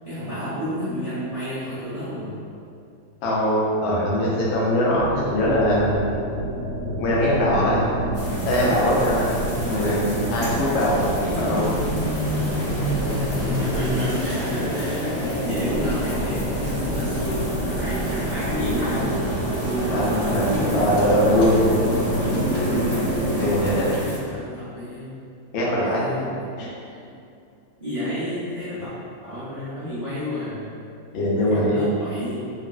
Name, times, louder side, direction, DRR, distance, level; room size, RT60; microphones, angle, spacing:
voice 1, 0.0-2.4 13.6-19.1 19.6-21.2 23.0-23.7 24.0-25.1 25.6-26.5 27.8-28.9 29.2-30.7 31.3-32.5, equal, 60° right, -14 dB, 0.3 m, -30 dB
voice 2, 3.2-6.1 7.0-7.9 8.5-9.4 9.7-11.8 19.9-21.7 23.4-23.9 25.5-26.1 26.6-26.7 31.1-31.8, equal, 85° left, -6 dB, 1.4 m, -21 dB
sound 1, 4.9-23.8, right 1 dB, 80° right, 1.3 m, -28 dB
Fixed-wing aircraft airplane, 7.7-18.0, equal, 60° left, 1.2 m, -31 dB
sound 2, 8.1-24.2, equal, 40° left, 1.8 m, -32 dB
3.4 x 2.3 x 2.2 m, 2.5 s
omnidirectional pair, 2.1 m